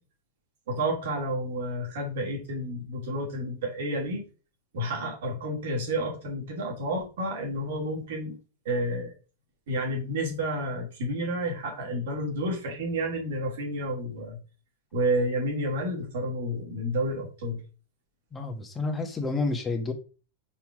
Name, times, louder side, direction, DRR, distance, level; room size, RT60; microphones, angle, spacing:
voice 1, 0.7-4.2 4.7-8.4 8.6-9.1 9.7-14.4 14.9-17.6, right 1 dB, 65° right, 2.8 m, -30 dB
voice 2, 18.3-19.9, left 3 dB, 20° left, 1.5 m, -29 dB
5.7 x 4.5 x 4.8 m
figure-of-eight pair, 95°, 0 cm